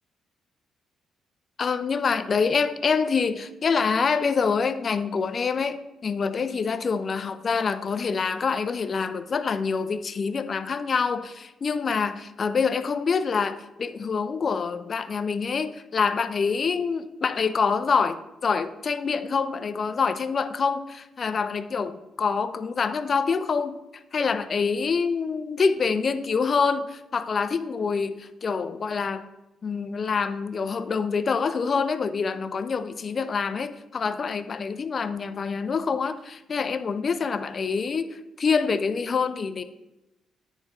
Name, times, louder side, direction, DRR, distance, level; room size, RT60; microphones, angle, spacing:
voice 1, 1.6-23.8 24.1-29.2 29.6-39.6, left 5 dB, 45° left, 10 dB, 0.5 m, -26 dB
9.8 x 3.7 x 4.1 m, 0.95 s
cardioid pair, 90°, 0 cm